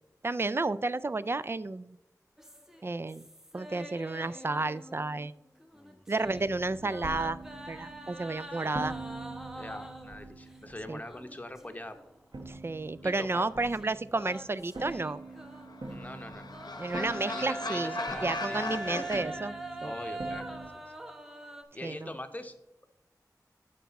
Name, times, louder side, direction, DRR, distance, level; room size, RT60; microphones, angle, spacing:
voice 1, 0.2-2.0 2.8-3.3 3.5-5.3 6.1-7.4 7.7-8.9 10.9-11.0 12.5-15.2 16.8-18.0 18.2-19.6 19.8-19.9 21.8-22.1, right 3 dB, 35° right, 16 dB, 0.3 m, -32 dB
sound 1, 2.4-5.3 5.6-10.3 11.0-12.1 12.4-12.5 13.7-15.9 16.4-21.6, right 1 dB, 5° right, 0.8 m, -43 dB
voice 2, 5.7-6.0 8.6-8.9 9.5-12.0 13.0-13.5 15.9-16.5 16.9-18.7 19.8-20.5 21.7-22.5, left 1 dB, 20° left, 7 dB, 0.9 m, -43 dB
sound 2, 6.2-12.0 12.3-20.7, right 2 dB, 75° right, 1.1 m, -45 dB
sound 3, 15.4-19.2, left 3 dB, 85° left, 0.8 m, -39 dB
11.5 x 4.7 x 4.1 m, 0.92 s
wide cardioid pair, 70°, 7 cm